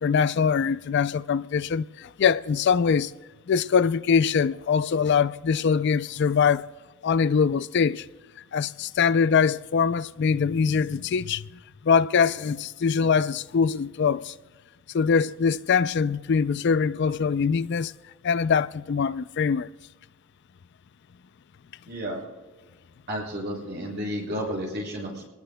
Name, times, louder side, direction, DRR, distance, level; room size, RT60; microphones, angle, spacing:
voice 1, 0.0-3.1 3.5-6.7 7.0-8.1 8.5-11.5 11.8-14.3 14.9-17.9 18.2-19.7, left 6 dB, 50° left, 0.3 m, -23 dB
voice 2, 21.9-22.2 23.1-25.3, equal, 50° right, 6.5 m, -32 dB
25.5 x 20.0 x 2.2 m
head